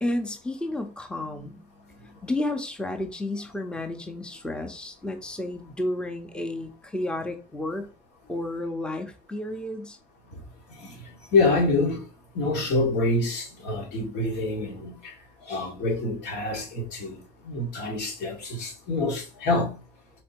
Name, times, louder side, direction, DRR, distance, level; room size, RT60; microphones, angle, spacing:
voice 1, 0.0-7.9 8.3-10.0, left 1 dB, 5° left, 0.7 m, -32 dB
voice 2, 10.7-12.1 12.3-15.2 15.4-19.8, left 2 dB, 80° left, 1.9 m, -27 dB
4.3 x 2.8 x 4.4 m
cardioid pair, 110°, 17 cm